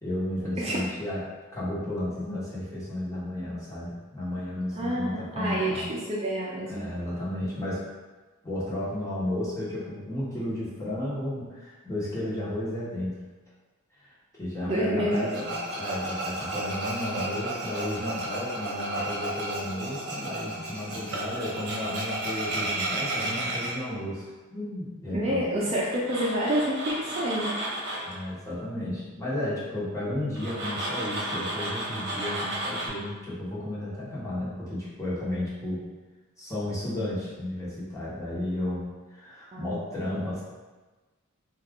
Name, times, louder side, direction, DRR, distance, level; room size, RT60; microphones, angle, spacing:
voice 1, 0.0-1.2 1.5-5.9 6.6-7.8 8.4-13.2 13.9-25.5 28.0-35.8 36.4-40.4, left 1 dB, 15° left, -8 dB, 1.1 m, -33 dB
voice 2, 4.8-6.8 14.6-15.3 25.1-27.5 39.5-39.7, right 1 dB, 30° right, -5 dB, 0.5 m, -28 dB
Tools, 15.1-23.7 25.9-28.1 30.4-32.9, right 1 dB, 50° right, 0.9 m, -33 dB
4.0 x 2.4 x 3.6 m, 1.3 s
head